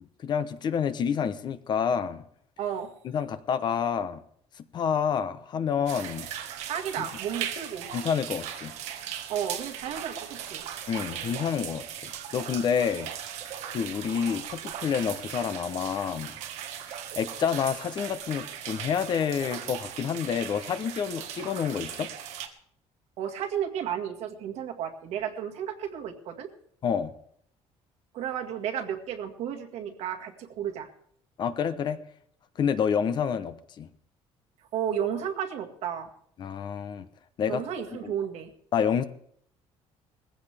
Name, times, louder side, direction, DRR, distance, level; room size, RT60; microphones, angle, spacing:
voice 1, 0.2-2.2 3.0-4.2 4.7-6.3 7.0-7.1 7.9-8.7 10.9-13.1 13.7-16.3 16.9-22.1 26.8-27.1 31.4-32.0 32.6-33.9 36.4-37.1 37.4-37.6 38.0-38.1 38.7-39.1, left 7 dB, 40° left, 12 dB, 0.9 m, -28 dB
voice 2, 2.6-2.9 6.7-7.9 9.3-10.6 23.2-26.5 28.1-30.9 34.7-36.1 37.5-38.5, right 9 dB, 70° right, 4 dB, 1.9 m, -33 dB
sound 1, 5.9-22.5, right 10 dB, 90° right, 1.6 m, -38 dB
20.0 x 15.5 x 3.5 m, 0.65 s
cardioid pair, 165°, 11 cm